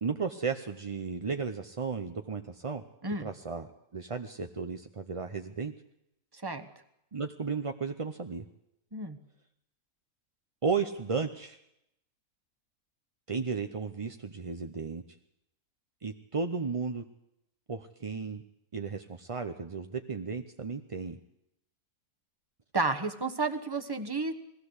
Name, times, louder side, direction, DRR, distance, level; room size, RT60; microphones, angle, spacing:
voice 1, 0.0-2.8 3.2-5.7 7.1-8.4 10.6-11.6 13.3-15.0 16.0-17.0 17.7-18.4 18.7-21.2, right 5 dB, 35° right, 6 dB, 0.6 m, -34 dB
voice 2, 22.7-24.3, right 3 dB, 15° right, 7 dB, 1.2 m, -31 dB
20.5 x 16.0 x 8.1 m, 0.81 s
omnidirectional pair, 1.6 m